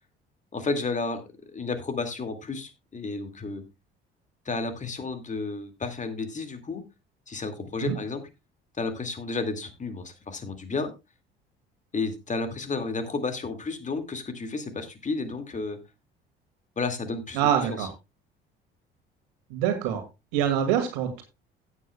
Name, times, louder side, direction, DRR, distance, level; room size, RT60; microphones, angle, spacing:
voice 1, 0.5-3.6 4.5-6.8 7.3-8.2 8.8-10.9 11.9-15.8 16.8-17.9, left 3 dB, 25° left, 8 dB, 2.2 m, -32 dB
voice 2, 17.3-17.9 19.5-20.0 20.3-21.2, right 9 dB, 65° right, 6 dB, 2.1 m, -25 dB
16.5 x 8.3 x 2.3 m, 0.25 s
figure-of-eight pair, 55°, 29 cm